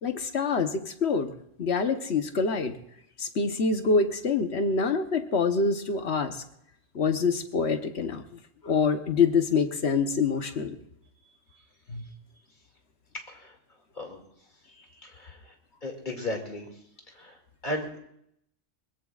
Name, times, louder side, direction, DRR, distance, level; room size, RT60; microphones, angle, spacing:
voice 1, 0.0-1.3 1.6-2.8 3.2-6.4 6.9-8.4 8.6-10.8 11.9-12.0, left 5 dB, 60° left, 7 dB, 1.3 m, -26 dB
voice 2, 15.0-15.4 15.8-16.7 17.2-17.4 17.6-18.0, left 1 dB, 40° left, 1 dB, 2.6 m, -35 dB
22.0 x 20.5 x 2.4 m, 0.73 s
omnidirectional pair, 1.3 m